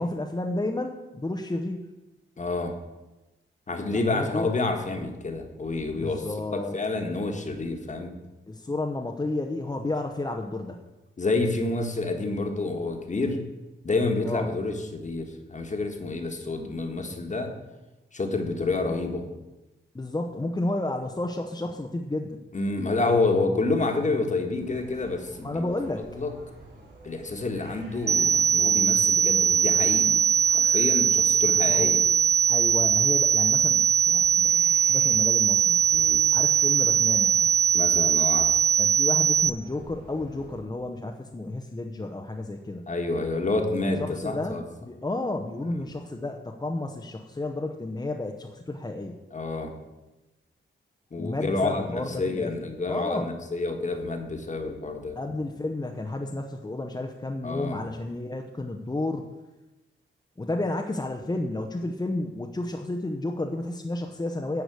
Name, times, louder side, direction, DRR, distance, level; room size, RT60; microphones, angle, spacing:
voice 1, 0.0-1.9 3.9-4.5 6.0-6.8 8.5-10.8 14.2-14.5 19.9-22.4 25.4-26.1 31.7-31.9 32.5-35.9 36.3-37.5 38.8-42.9 44.0-49.1 51.2-52.5 52.9-53.3 55.2-59.3 60.4-64.6, left 2 dB, 20° left, 2 dB, 0.8 m, -31 dB
voice 2, 2.4-2.7 3.7-8.1 11.2-13.5 13.8-17.5 18.1-19.2 22.5-25.7 26.1-26.3 27.0-32.0 35.9-36.2 37.7-38.6 42.9-44.6 45.8-45.9 49.3-49.7 51.1-55.2 57.4-57.8, left 3 dB, 35° left, 4 dB, 1.5 m, -28 dB
sound 1, 24.5-40.6, right 2 dB, 55° right, 4.4 m, -49 dB
sound 2, 28.1-39.5, right 7 dB, 30° right, 0.4 m, -21 dB
11.5 x 4.9 x 8.2 m, 1.1 s
wide cardioid pair, 120°, 21 cm